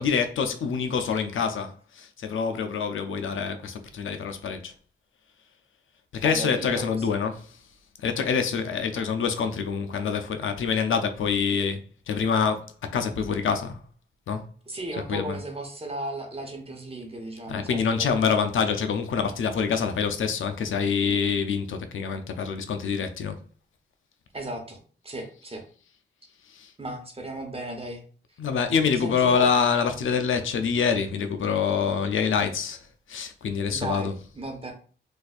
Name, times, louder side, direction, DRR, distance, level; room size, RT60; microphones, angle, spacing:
voice 1, 0.0-4.7 6.1-7.6 8.0-13.8 14.3-14.4 15.1-15.4 17.5-23.4 26.5-26.7 28.4-34.3, left 6 dB, 85° left, 0.5 m, -26 dB
voice 2, 6.2-7.1 14.7-18.4 24.3-24.8 25.0-25.6 26.8-28.0 29.0-29.5 33.7-34.1 34.4-34.7, right 1 dB, 30° right, 1.0 m, -35 dB
4.0 x 2.5 x 2.5 m
cardioid pair, 55°, 20 cm